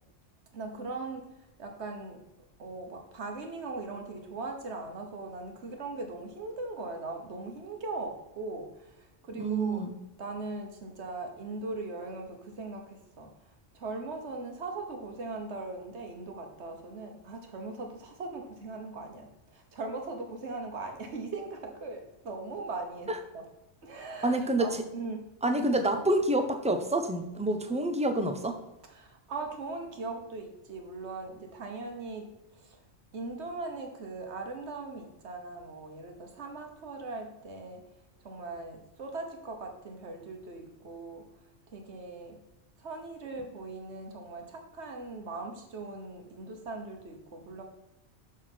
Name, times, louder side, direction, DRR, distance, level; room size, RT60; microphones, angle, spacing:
voice 1, 0.5-2.2 2.6-9.9 10.2-13.3 13.7-23.4 23.8-25.3 28.9-32.8 33.1-37.8 38.2-41.3 41.7-42.4 42.8-47.6, right 3 dB, 70° right, 4 dB, 1.5 m, -40 dB
voice 2, 9.3-10.0 23.1-23.2 24.2-24.8 25.4-28.6, right 1 dB, 10° right, 7 dB, 0.4 m, -27 dB
6.2 x 6.2 x 4.4 m, 0.96 s
omnidirectional pair, 1.2 m